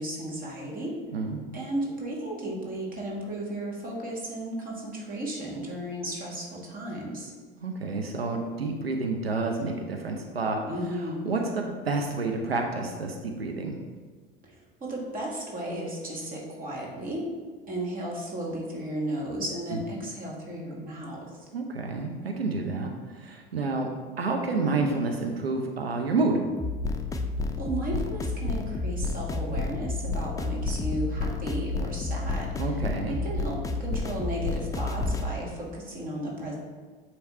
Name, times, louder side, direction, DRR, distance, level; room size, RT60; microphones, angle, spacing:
voice 1, 0.0-1.0 1.5-7.3 10.7-11.2 14.4-17.3 17.7-21.5 27.6-32.8 33.1-36.6, right 1 dB, 30° right, -3 dB, 2.0 m, -34 dB
voice 2, 1.1-1.5 7.6-10.6 11.0-13.8 21.5-23.9 24.2-26.4 32.6-33.2, right 3 dB, 85° right, 2 dB, 0.7 m, -29 dB
sound 1, 26.6-35.3, left 3 dB, 10° left, 0.5 m, -30 dB
8.6 x 3.2 x 4.3 m, 1.4 s
figure-of-eight pair, 75°, 30 cm